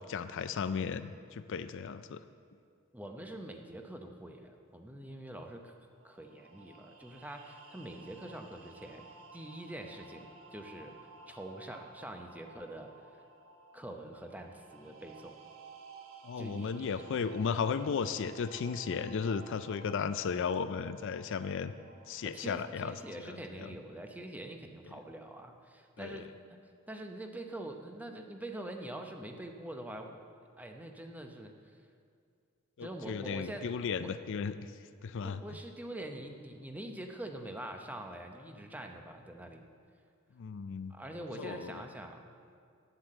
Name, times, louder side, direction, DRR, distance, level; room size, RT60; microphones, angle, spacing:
voice 1, 0.1-2.2 16.2-21.7 22.1-22.9 23.3-23.7 26.0-26.3 32.8-34.7 35.0-35.4 40.4-40.9 41.4-41.7, left 6 dB, 60° left, 12 dB, 0.4 m, -35 dB
voice 2, 2.9-5.7 6.0-9.1 9.3-10.9 11.3-13.2 13.7-15.4 16.4-16.9 22.2-26.6 26.9-30.2 30.6-31.5 32.8-33.7 34.0-34.1 35.2-39.6 40.9-42.2, right 1 dB, 10° right, 4 dB, 0.8 m, -45 dB
sound 1, 5.9-23.2, right 3 dB, 75° right, 1.0 m, -55 dB
9.2 x 7.8 x 7.7 m, 2.3 s
head